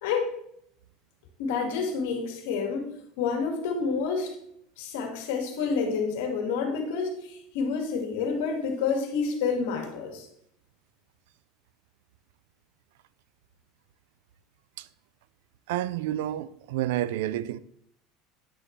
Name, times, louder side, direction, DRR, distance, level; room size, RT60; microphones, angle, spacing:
voice 1, 0.0-0.3 1.4-2.9 3.2-4.3 4.8-10.3, left 5 dB, 85° left, 1.8 m, -29 dB
voice 2, 15.7-17.6, right 13 dB, 85° right, 0.4 m, -29 dB
9.7 x 6.6 x 3.2 m
supercardioid pair, 120°, 0 cm